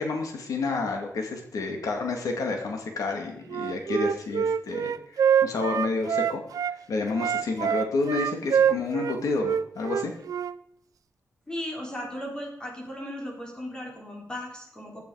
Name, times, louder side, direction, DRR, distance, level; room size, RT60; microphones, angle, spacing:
voice 1, 0.0-10.1, left 3 dB, 80° left, 3 dB, 2.5 m, -30 dB
Wind instrument woodwind instrument, 3.5-6.8 7.1-10.5, right 8 dB, 90° right, 0.5 m, -25 dB
voice 2, 11.5-15.0, left 1 dB, 15° left, 0 dB, 3.9 m, -36 dB
15.5 x 11.0 x 4.9 m, 0.75 s
wide cardioid pair, 165°, 6 cm